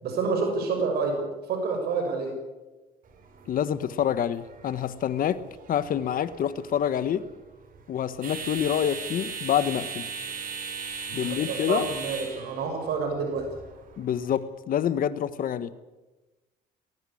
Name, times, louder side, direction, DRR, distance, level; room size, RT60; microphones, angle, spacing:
voice 1, 0.0-1.2 1.5-2.3 11.4-13.5, right 4 dB, 70° right, 3 dB, 6.0 m, -28 dB
sound 1, 3.1-14.4, right 5 dB, 55° right, 5.1 m, -39 dB
voice 2, 3.5-7.3 7.9-10.1 11.1-11.9 14.0-15.7, left 9 dB, 55° left, 14 dB, 1.4 m, -27 dB
19.5 x 18.0 x 8.7 m, 1.1 s
cardioid pair, 110°, 17 cm